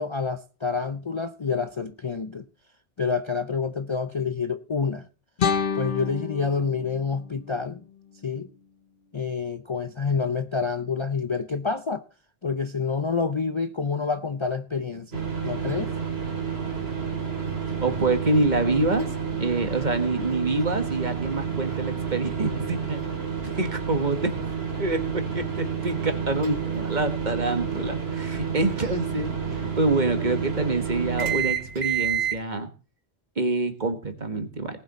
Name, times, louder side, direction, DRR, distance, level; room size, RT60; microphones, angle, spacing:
voice 1, 0.0-2.4 3.0-5.0 5.7-7.8 8.2-8.5 9.1-12.0 12.4-15.9, left 5 dB, 35° left, 0.5 m, -28 dB
sound 1, 5.4-8.4, left 6 dB, 55° left, 0.9 m, -30 dB
sound 2, 15.1-32.4, right 7 dB, 75° right, 2.4 m, -30 dB
voice 2, 17.8-19.1 19.4-23.0 23.4-24.3 24.8-32.7 33.4-34.8, right 2 dB, 45° right, 1.6 m, -26 dB
18.5 x 7.7 x 4.2 m
omnidirectional pair, 1.1 m